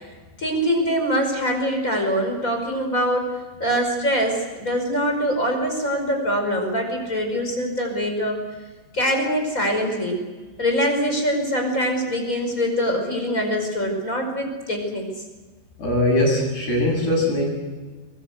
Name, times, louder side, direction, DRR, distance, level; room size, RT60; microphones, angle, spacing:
voice 1, 0.4-3.3 3.6-8.4 8.9-10.2 10.6-15.1, equal, 20° left, 4 dB, 5.3 m, -23 dB
voice 2, 15.8-17.5, left 1 dB, 65° left, 0 dB, 10.0 m, -21 dB
23.5 x 23.0 x 8.1 m, 1.3 s
omnidirectional pair, 5.1 m